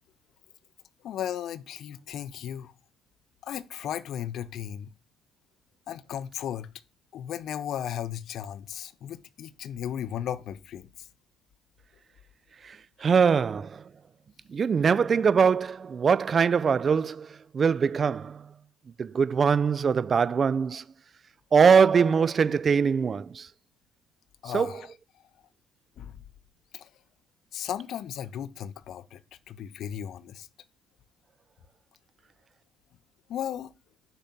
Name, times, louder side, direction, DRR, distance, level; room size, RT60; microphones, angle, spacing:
voice 1, 1.0-2.7 3.4-4.9 5.9-6.7 7.1-11.1 13.0-13.1 24.4-24.9 26.0-26.2 26.7-26.9 27.5-29.2 29.5-30.5 33.3-33.7, left 10 dB, 60° left, 0.4 m, -35 dB
voice 2, 12.6-13.8 14.5-18.5 19.0-20.8 21.5-23.5 24.5-24.8, right 6 dB, 40° right, 0.3 m, -23 dB
6.6 x 2.7 x 5.7 m
hypercardioid pair, 55°, 0 cm